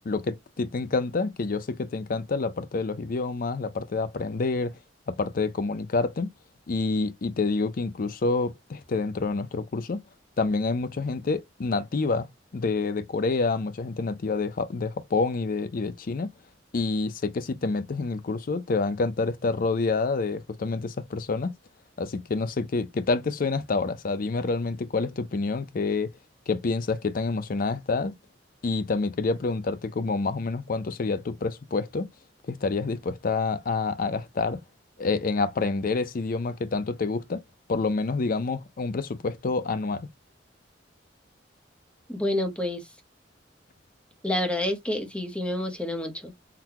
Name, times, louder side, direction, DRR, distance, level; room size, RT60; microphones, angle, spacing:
voice 1, 0.0-4.7 5.1-6.3 6.7-10.0 10.4-12.3 12.5-16.3 16.7-21.5 22.0-26.1 26.5-28.1 28.6-32.1 32.5-34.6 35.0-37.4 37.7-40.1, left 3 dB, 50° left, 0.5 m, -28 dB
voice 2, 42.1-42.8 44.2-46.5, left 1 dB, 5° left, 0.8 m, -28 dB
3.9 x 2.2 x 2.8 m
head